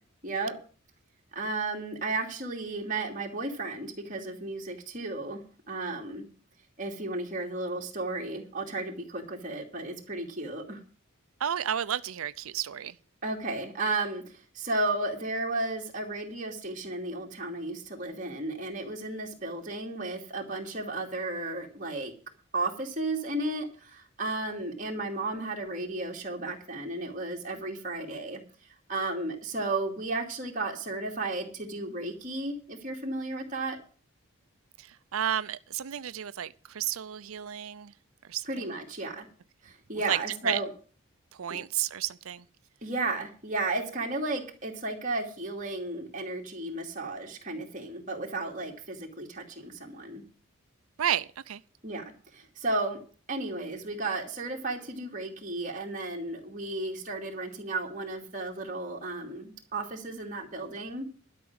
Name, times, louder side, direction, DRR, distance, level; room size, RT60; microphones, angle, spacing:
voice 1, 0.2-0.6 1.3-6.2 6.8-10.8 13.2-22.1 22.5-28.4 28.9-33.8 38.5-39.3 39.6-40.7 42.8-50.2 51.8-52.0 52.3-53.0 53.3-61.1, right 2 dB, 35° right, 2.7 m, -34 dB
voice 2, 11.4-13.0 34.8-37.9 38.3-38.6 40.1-40.6 41.3-42.4 51.0-51.6, right 10 dB, 80° right, 0.5 m, -32 dB
12.5 x 6.0 x 8.8 m
head